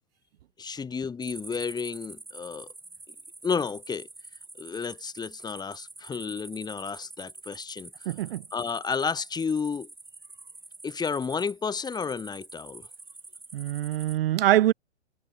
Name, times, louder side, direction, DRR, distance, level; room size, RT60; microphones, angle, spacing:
voice 1, 0.6-2.7 3.4-4.1 4.6-7.9 8.5-9.9 10.8-12.9, left 5 dB, 10° left, 3.9 m, -31 dB
sound 1, 1.2-14.2, right 3 dB, 5° right, 7.5 m, -47 dB
voice 2, 8.1-8.4 13.5-14.7, right 13 dB, 55° right, 1.9 m, -24 dB
hypercardioid pair, 120°, 35 cm